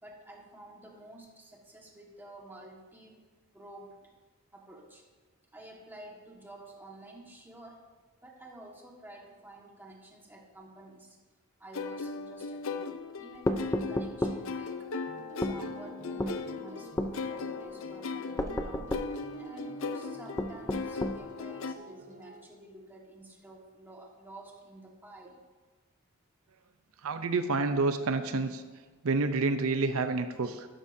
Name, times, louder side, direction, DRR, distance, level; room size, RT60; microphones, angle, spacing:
voice 1, 0.0-3.2 3.5-4.1 4.5-5.0 5.5-7.8 8.2-11.2 11.6-12.9 13.2-14.9 15.4-18.9 19.3-25.4, right 1 dB, 10° right, -1 dB, 1.5 m, -50 dB
sound 1, 11.7-21.7, left 4 dB, 65° left, 0.6 m, -38 dB
sound 2, 13.5-14.4 15.4-15.6 16.2-16.4 17.0-17.2 18.4-19.1 20.4-21.2, left 1 dB, 15° left, 0.5 m, -31 dB
sound 3, 15.1-22.4, right 2 dB, 40° right, 0.9 m, -51 dB
voice 2, 27.0-28.6 29.0-30.7, right 3 dB, 80° right, 9 dB, 0.6 m, -28 dB
12.5 x 11.0 x 2.7 m, 1.3 s
head